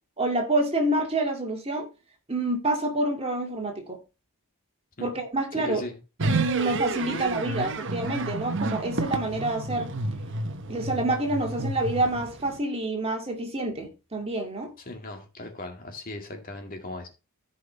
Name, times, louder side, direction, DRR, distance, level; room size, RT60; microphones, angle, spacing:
voice 1, 0.2-1.9 2.3-4.0 5.0-5.8 6.3-9.9 10.7-14.7, right 2 dB, 25° right, 2.3 m, -27 dB
voice 2, 5.5-6.0 7.1-7.4 14.8-17.1, left 2 dB, 40° left, 2.1 m, -38 dB
sound 1, 6.2-12.6, right 2 dB, 55° right, 1.1 m, -30 dB
14.5 x 5.7 x 3.3 m
head